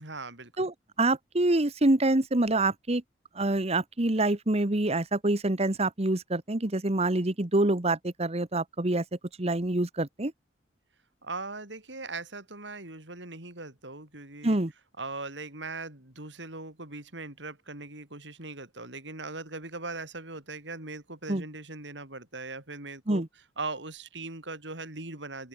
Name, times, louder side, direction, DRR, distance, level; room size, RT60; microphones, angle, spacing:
voice 1, 0.0-0.7 11.2-14.6 15.0-23.2 23.6-25.5, right 3 dB, 80° right, 5.5 m, -40 dB
voice 2, 0.6-3.0 3.3-9.0 9.4-10.3 14.4-14.7 21.3-21.4 23.1-23.3, right 2 dB, 35° right, 1.4 m, -26 dB
open air
head